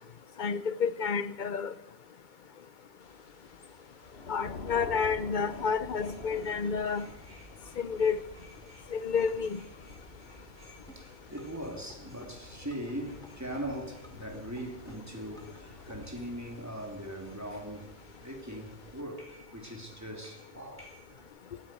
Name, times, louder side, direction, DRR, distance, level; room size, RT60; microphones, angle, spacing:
voice 1, 0.4-1.7 4.3-7.1 7.8-8.2 8.9-9.6, left 6 dB, 50° left, 0.7 m, -30 dB
Thunder / Rain, 3.0-19.0, left 4 dB, 70° left, 1.6 m, -50 dB
sound 1, 4.8-21.3, equal, 20° left, 4.8 m, -55 dB
voice 2, 6.8-7.2 7.5-7.8 8.8-9.0 10.4-10.6 10.8-17.9 18.2-20.9, right 1 dB, 15° right, 2.3 m, -41 dB
sound 2, 10.9-11.6 11.9-12.9 13.2-14.3 14.6-15.6 15.9-16.0, equal, 5° left, 1.4 m, -55 dB
12.5 x 9.8 x 8.7 m
omnidirectional pair, 1.1 m